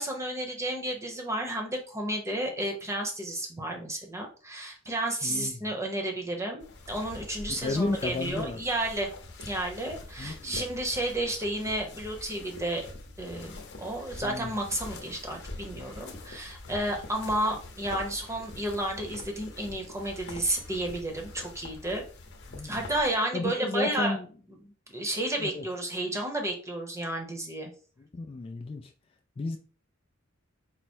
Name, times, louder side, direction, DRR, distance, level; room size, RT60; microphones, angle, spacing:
voice 1, 0.0-9.1 9.5-12.9 13.2-22.0 22.6-24.2 24.9-27.7, right 1 dB, 15° right, 0.8 m, -32 dB
voice 2, 5.2-5.7 7.5-8.6 10.2-10.6 14.2-14.5 22.5-22.9 23.3-24.3 25.4-25.7 28.0-28.9 29.4-29.6, left 3 dB, 25° left, 0.3 m, -33 dB
sound 1, 6.6-23.1, left 2 dB, 55° left, 0.8 m, -44 dB
4.6 x 2.1 x 4.3 m
head